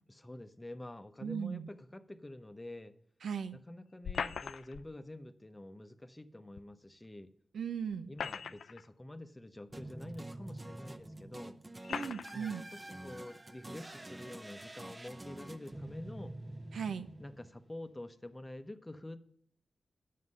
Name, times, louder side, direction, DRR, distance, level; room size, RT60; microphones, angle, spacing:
voice 1, 0.1-2.9 3.5-7.3 8.1-11.6 12.3-16.4 17.2-19.3, left 1 dB, 20° left, 10 dB, 0.9 m, -48 dB
voice 2, 1.2-1.7 3.2-3.6 7.5-8.1 11.9-12.6 16.7-17.1, right 7 dB, 85° right, 10 dB, 0.6 m, -37 dB
sound 1, 4.0-4.9 6.6-6.7 7.9-8.8 9.7-9.8 10.8-10.9 11.8-12.3, left 6 dB, 85° left, 0.4 m, -39 dB
sound 2, 9.7-18.0, right 1 dB, 25° right, 0.8 m, -47 dB
9.4 x 7.5 x 5.4 m, 0.66 s
cardioid pair, 55°, 0 cm